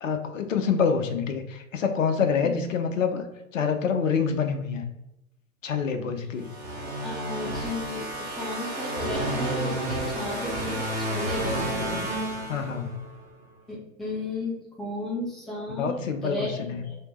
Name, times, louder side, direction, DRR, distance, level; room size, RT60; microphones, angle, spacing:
voice 1, 0.0-3.3 3.5-4.8 5.6-6.5 12.5-13.0 15.7-16.8, left 6 dB, 65° left, 6 dB, 0.7 m, -26 dB
sound 1, 6.4-13.1, right 1 dB, 40° right, 1.3 m, -31 dB
voice 2, 7.0-12.1 13.7-17.0, left 2 dB, ahead, -4 dB, 0.5 m, -34 dB
3.4 x 2.8 x 4.2 m, 0.90 s
figure-of-eight pair, 105°, 42 cm